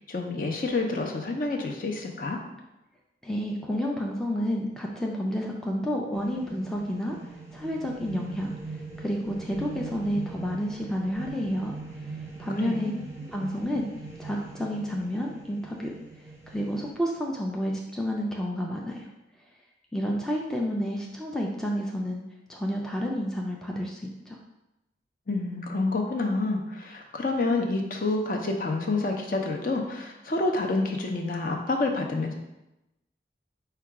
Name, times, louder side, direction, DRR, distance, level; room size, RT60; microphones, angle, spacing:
voice 1, 0.1-2.4 12.6-13.0 25.3-32.3, left 3 dB, 50° left, 2 dB, 0.6 m, -28 dB
voice 2, 3.2-7.2 7.5-8.5 9.0-11.8 12.4-12.9 13.3-13.9 14.2-15.9 16.5-19.0 19.9-22.2 22.5-24.4, equal, 5° left, -2 dB, 0.3 m, -30 dB
sound 1, 6.1-16.9, right 3 dB, 15° right, 0.7 m, -42 dB
4.7 x 2.3 x 4.6 m, 0.95 s
head